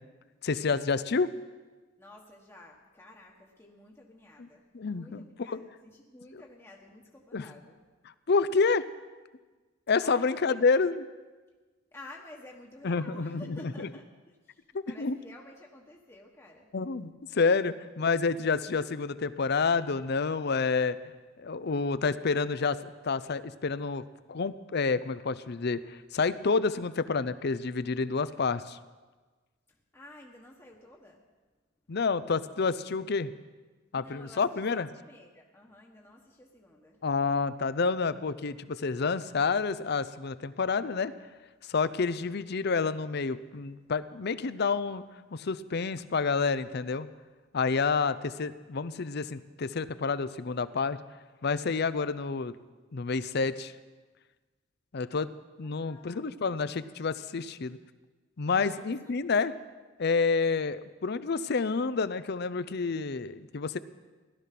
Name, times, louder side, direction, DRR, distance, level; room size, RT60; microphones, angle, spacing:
voice 1, 0.4-1.3 4.7-5.6 6.3-6.4 7.3-7.5 8.3-8.9 9.9-11.1 12.8-13.9 14.7-15.2 16.7-21.0 21.4-24.0 24.3-28.8 31.9-33.3 33.9-34.9 37.0-41.1 41.6-45.0 45.3-47.1 47.5-51.0 51.4-52.6 52.9-53.7 54.9-55.3 55.6-57.8 58.4-59.5 60.0-63.8, left 4 dB, 55° left, 15 dB, 0.6 m, -29 dB
voice 2, 2.0-7.8 10.0-10.6 11.9-16.7 29.7-31.2 33.9-34.4 34.7-37.0 55.6-57.0 58.5-59.6, left 1 dB, 15° left, -2 dB, 1.2 m, -52 dB
17.0 x 12.5 x 5.9 m, 1.3 s
head